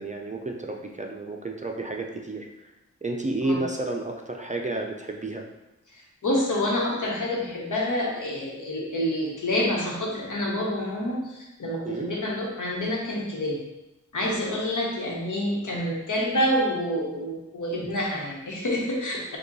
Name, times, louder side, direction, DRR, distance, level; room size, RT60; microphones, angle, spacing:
voice 1, 0.0-2.5 3.0-5.4 11.9-12.1, right 2 dB, 25° right, 1 dB, 0.4 m, -31 dB
voice 2, 6.2-13.6 14.1-19.4, left 1 dB, 85° left, -2 dB, 1.1 m, -27 dB
5.1 x 2.3 x 4.0 m, 0.96 s
wide cardioid pair, 90°, 30 cm